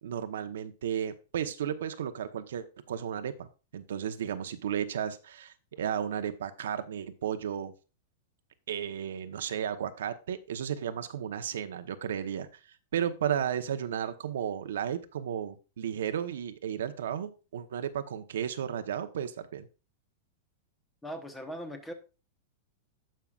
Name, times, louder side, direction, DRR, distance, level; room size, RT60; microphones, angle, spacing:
voice 1, 0.0-3.5 3.7-7.7 8.7-12.5 12.9-19.7, right 9 dB, 85° right, 9 dB, 1.0 m, -34 dB
voice 2, 21.0-21.9, equal, 5° left, 7 dB, 1.1 m, -39 dB
16.5 x 5.7 x 2.4 m, 0.33 s
supercardioid pair, 160°, 0 cm